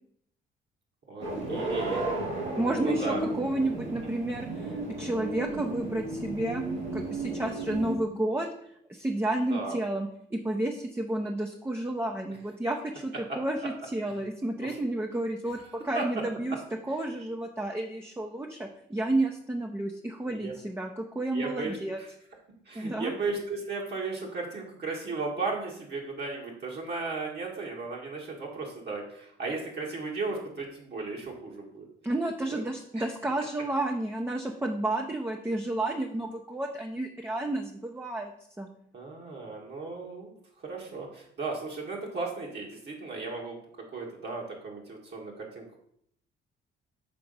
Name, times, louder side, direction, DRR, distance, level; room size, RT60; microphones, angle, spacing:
voice 1, 1.1-2.1 2.8-3.2 4.0-4.1 9.5-9.8 15.6-16.0 20.3-20.5 21.3-22.1 22.6-31.9 32.5-32.6 32.9-33.0 38.9-45.8, right 3 dB, 55° right, -2 dB, 1.6 m, -36 dB
sound 1, 1.2-8.0, right 2 dB, 85° right, 2.4 m, -33 dB
voice 2, 2.6-6.6 6.9-16.6 16.8-22.0 22.7-23.1 32.0-38.3 38.6-38.7, right 1 dB, 10° right, 3 dB, 0.6 m, -31 dB
6.0 x 3.8 x 5.3 m, 0.69 s
cardioid pair, 90°, 20 cm